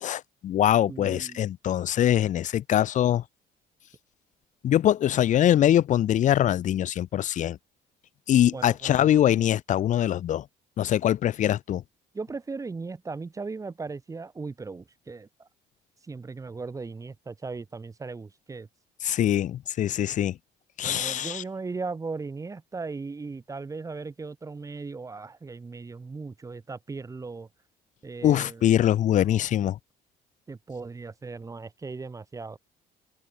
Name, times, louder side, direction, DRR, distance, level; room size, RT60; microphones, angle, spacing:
voice 1, 0.0-3.2 4.6-7.6 8.3-10.4 10.8-11.8 19.0-20.4 20.8-21.4 28.2-29.8, left 11 dB, 45° left, 0.5 m, -23 dB
voice 2, 0.8-1.5 8.5-9.3 12.1-15.5 16.0-18.7 20.8-27.5 28.0-29.5 30.5-32.6, right 4 dB, 20° right, 0.9 m, -38 dB
cardioid pair, 110°, 17 cm